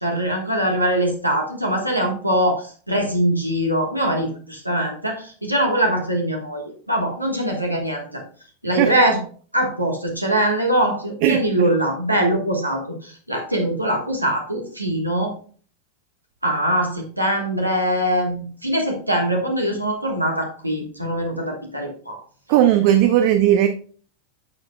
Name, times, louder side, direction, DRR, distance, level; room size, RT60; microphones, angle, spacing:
voice 1, 0.0-6.6 6.9-8.2 8.6-9.2 9.5-15.3 16.4-22.2, right 1 dB, 85° right, 1.4 m, -22 dB
voice 2, 22.5-23.7, right 11 dB, 45° right, 0.5 m, -16 dB
10.5 x 6.5 x 2.3 m
figure-of-eight pair, 90°, 0 cm